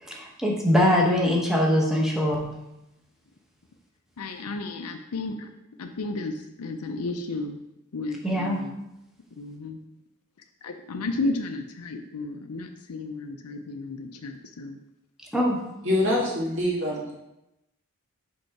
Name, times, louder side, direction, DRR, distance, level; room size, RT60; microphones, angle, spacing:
voice 1, 0.0-2.4 8.2-8.6 15.3-15.6, left 1 dB, ahead, -2 dB, 1.1 m, -22 dB
voice 2, 4.2-5.5 5.8-7.6 7.9-8.8 9.4-9.8 10.6-14.8, left 2 dB, 80° left, 5 dB, 0.5 m, -33 dB
voice 3, 15.8-17.1, left 1 dB, 60° right, -3 dB, 1.8 m, -25 dB
5.3 x 3.7 x 5.8 m, 0.89 s
head